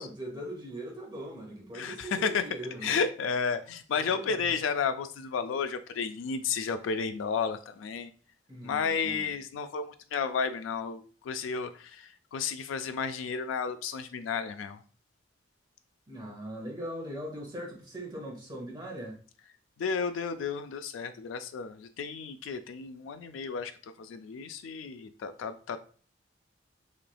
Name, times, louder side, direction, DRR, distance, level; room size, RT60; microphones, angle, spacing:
voice 1, 0.0-3.0 3.9-4.5 8.5-9.2 16.1-19.2, right 1 dB, 25° right, 0.8 m, -40 dB
voice 2, 1.7-2.4 2.8-8.1 8.6-14.8 19.8-23.7 24.0-25.8, left 5 dB, 90° left, 0.3 m, -32 dB
3.2 x 2.9 x 2.2 m
head